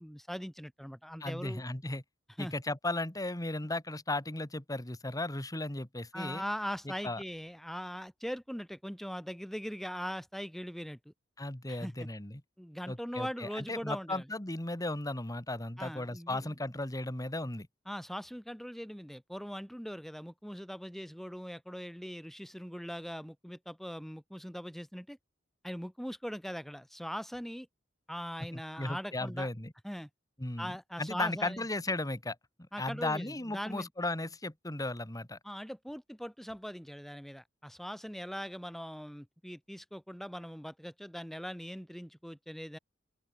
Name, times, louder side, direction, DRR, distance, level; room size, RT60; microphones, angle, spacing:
voice 1, 0.0-1.6 2.4-2.5 6.1-11.1 11.7-12.1 12.6-14.3 15.8-16.6 17.9-25.2 25.6-27.7 28.1-29.5 29.8-30.1 30.6-31.7 32.7-33.9 35.4-42.8, equal, ahead, 2.7 m, -41 dB
voice 2, 1.2-2.0 2.4-6.4 7.0-7.2 11.4-12.4 12.9-17.7 28.5-29.7 30.4-32.4 32.8-35.4, left 2 dB, 20° left, 2.0 m, -36 dB
open air
head